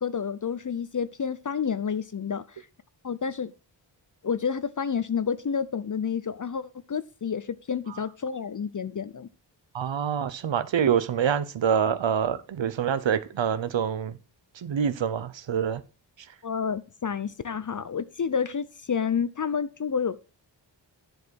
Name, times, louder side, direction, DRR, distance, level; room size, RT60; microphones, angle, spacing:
voice 1, 0.0-2.6 3.0-3.5 4.2-9.3 16.4-20.2, left 6 dB, 40° left, 0.6 m, -29 dB
voice 2, 9.7-14.2 14.5-15.8, right 8 dB, 70° right, 0.9 m, -26 dB
10.0 x 4.8 x 6.3 m
wide cardioid pair, 70°, 46 cm